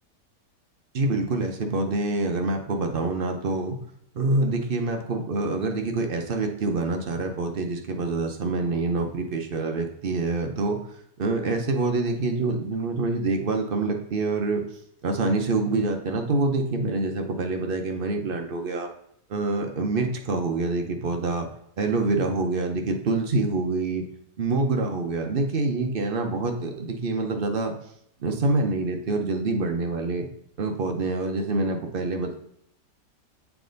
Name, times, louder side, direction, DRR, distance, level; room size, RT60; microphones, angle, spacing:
voice 1, 0.9-3.8 4.1-10.8 11.2-14.6 15.0-18.9 19.3-21.5 21.8-24.0 24.4-27.7 28.2-30.3 30.6-32.4, right 3 dB, 60° right, 4 dB, 0.6 m, -26 dB
7.1 x 3.4 x 3.9 m, 0.71 s
omnidirectional pair, 1.8 m